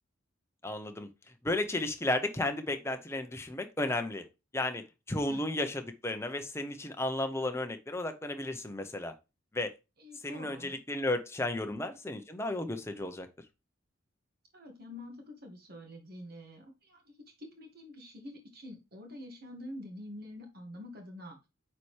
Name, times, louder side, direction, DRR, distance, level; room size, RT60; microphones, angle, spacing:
voice 1, 0.6-1.1 1.4-4.2 4.5-9.1 9.5-9.7 10.2-13.3, left 1 dB, 15° left, 6 dB, 0.7 m, -33 dB
voice 2, 10.0-10.7 11.6-11.8 14.5-21.4, left 1 dB, 50° right, 3 dB, 1.9 m, -47 dB
8.9 x 4.3 x 3.2 m, 0.26 s
head